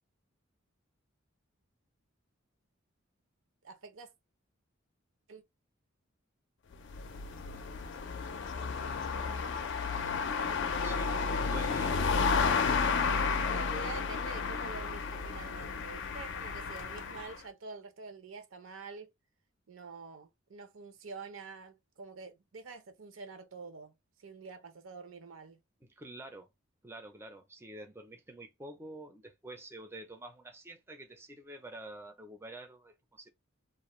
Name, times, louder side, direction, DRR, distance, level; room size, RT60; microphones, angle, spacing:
voice 1, 3.6-4.1 5.3-5.4 13.5-19.1 19.7-23.9 24.2-25.6, right 4 dB, 75° right, 0.6 m, -47 dB
sound 1, 6.7-17.4, left 5 dB, 60° left, 0.4 m, -32 dB
voice 2, 10.8-12.0 25.8-26.5 26.8-33.3, right 1 dB, 10° right, 0.4 m, -48 dB
2.4 x 2.1 x 3.0 m
head